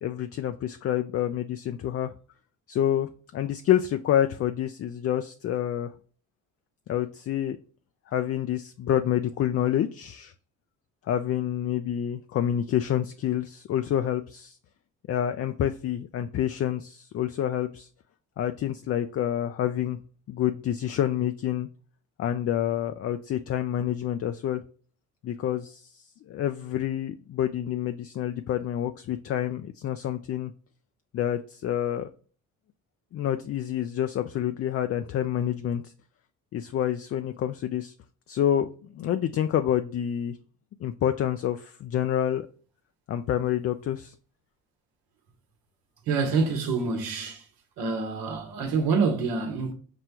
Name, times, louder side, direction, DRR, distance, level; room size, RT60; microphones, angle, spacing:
voice 1, 0.0-2.1 2.7-5.9 6.9-7.6 8.1-10.3 11.1-14.6 15.1-17.9 18.4-20.0 20.3-21.7 22.2-24.6 25.2-30.5 31.1-32.1 33.1-35.9 36.5-37.9 38.3-40.4 40.8-42.5 43.1-44.1, left 10 dB, 40° left, 0.4 m, -28 dB
voice 2, 46.1-47.5 47.8-49.7, right 4 dB, 75° right, 1.1 m, -26 dB
6.0 x 2.2 x 2.9 m
supercardioid pair, 65°, 37 cm